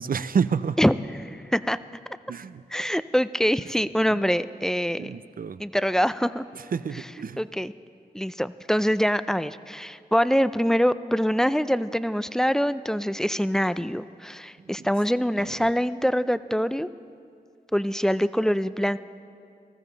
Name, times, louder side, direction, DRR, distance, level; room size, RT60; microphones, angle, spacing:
voice 1, 0.0-0.8 2.3-2.6 4.1-4.2 5.0-5.6 6.5-7.4 15.4-15.5, right 6 dB, 60° right, 14 dB, 0.5 m, -29 dB
voice 2, 0.8-1.8 2.7-5.1 5.6-6.4 7.4-7.7 8.1-16.9 17.7-19.0, equal, 5° left, 14 dB, 0.4 m, -24 dB
19.0 x 14.0 x 4.0 m, 2.4 s
cardioid pair, 45°, 17 cm